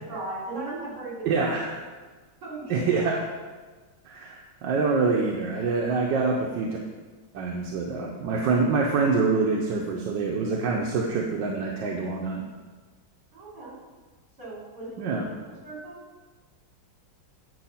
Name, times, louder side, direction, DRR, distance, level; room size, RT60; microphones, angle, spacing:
voice 1, 0.1-1.5 2.4-3.2 13.3-13.8 14.4-16.0, right 2 dB, 70° right, -6 dB, 3.8 m, -37 dB
voice 2, 1.2-1.8 2.7-3.2 4.0-6.8 7.3-12.4 15.0-15.3, right 4 dB, 85° right, 0 dB, 1.4 m, -25 dB
9.4 x 4.7 x 5.7 m, 1.4 s
omnidirectional pair, 1.9 m